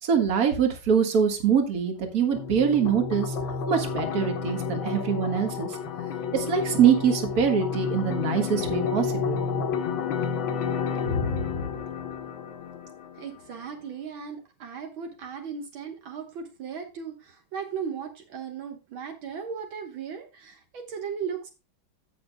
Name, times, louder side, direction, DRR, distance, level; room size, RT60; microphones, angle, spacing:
voice 1, 0.0-3.4 3.7-5.8 6.3-9.4 11.1-11.6, right 7 dB, 45° right, 5 dB, 2.1 m, -24 dB
sound 1, 2.4-13.4, left 6 dB, 75° left, 1.7 m, -31 dB
voice 2, 13.2-21.5, right 6 dB, 75° right, 4 dB, 2.0 m, -37 dB
16.5 x 6.0 x 2.2 m, 0.29 s
omnidirectional pair, 2.2 m